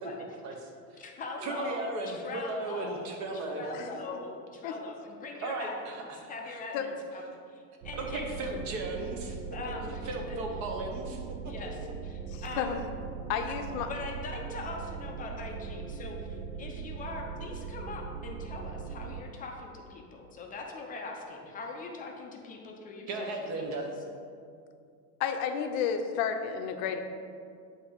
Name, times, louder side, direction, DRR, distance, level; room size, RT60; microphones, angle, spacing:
voice 1, 0.4-1.0 1.4-3.6 5.4-6.3 8.0-9.4 10.0-11.5 11.8-11.9 23.1-23.9, right 2 dB, 35° right, 2 dB, 0.9 m, -36 dB
voice 2, 1.0-5.8 6.3-8.4 9.5-10.4 11.4-12.8 13.5-13.6 13.9-23.8, left 3 dB, 20° left, 0 dB, 0.5 m, -42 dB
sound 1, 7.8-19.2, right 6 dB, 55° right, 0.5 m, -40 dB
voice 3, 12.3-12.8 13.3-13.9 25.2-27.0, left 7 dB, 60° left, 6 dB, 0.7 m, -31 dB
8.3 x 2.9 x 5.1 m, 2.3 s
supercardioid pair, 140°, 47 cm